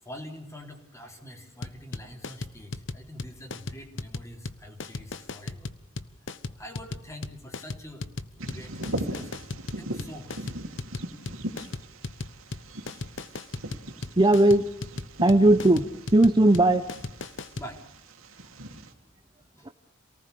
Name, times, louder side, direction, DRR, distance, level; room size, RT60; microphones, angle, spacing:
voice 1, 0.0-5.7 6.6-8.1 8.4-9.5 9.7-10.5 17.6-17.8 19.6-19.7, equal, 15° left, 2 dB, 3.8 m, -45 dB
sound 1, 1.6-17.7, left 3 dB, 65° left, 1.0 m, -37 dB
Bird vocalization bird call bird song, 8.4-18.9, right 1 dB, 85° right, 2.9 m, -39 dB
voice 2, 14.2-14.6 15.2-15.9 16.1-16.9 19.6-19.7, right 1 dB, 20° right, 8 dB, 0.8 m, -18 dB
27.5 x 19.0 x 6.9 m, 0.76 s
head